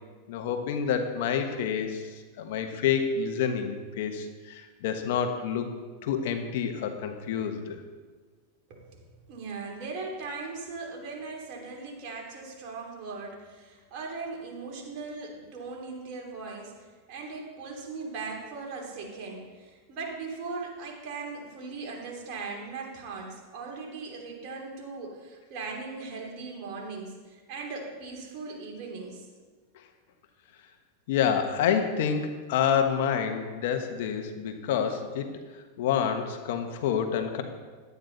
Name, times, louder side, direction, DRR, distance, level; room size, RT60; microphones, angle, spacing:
voice 1, 0.3-5.7 6.0-7.8 29.7-29.8 31.1-37.4, left 7 dB, 65° left, 6 dB, 1.2 m, -28 dB
voice 2, 8.7-9.0 9.3-29.2, right 4 dB, 50° right, -1 dB, 3.0 m, -39 dB
11.5 x 9.4 x 4.0 m, 1.4 s
hypercardioid pair, 120°, 0 cm